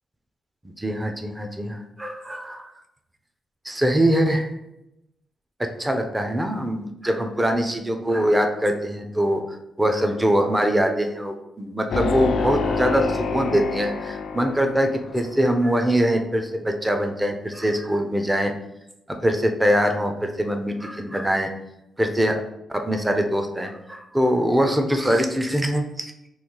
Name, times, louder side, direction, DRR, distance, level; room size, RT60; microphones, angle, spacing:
voice 1, 0.8-2.7 3.7-4.5 5.8-18.5 19.2-21.5 22.0-22.4 22.7-26.1, equal, 10° right, 4 dB, 0.3 m, -23 dB
sound 1, 11.9-15.4, left 4 dB, 70° left, 0.3 m, -27 dB
2.9 x 2.3 x 3.6 m, 0.86 s
cardioid pair, 130°, 0 cm